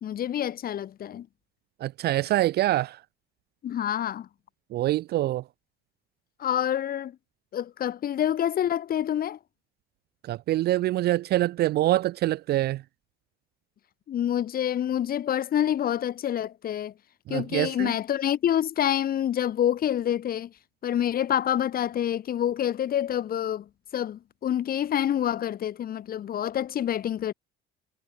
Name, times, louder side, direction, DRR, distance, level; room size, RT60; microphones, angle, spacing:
voice 1, 0.0-1.3 3.6-4.3 6.4-7.2 7.5-9.4 14.1-16.9 17.3-20.5 20.8-27.3, left 10 dB, 45° left, 1.7 m, -27 dB
voice 2, 1.8-3.0 4.7-5.4 10.2-12.8 17.3-17.9, right 15 dB, 50° right, 0.4 m, -25 dB
cardioid pair, 115°, 21 cm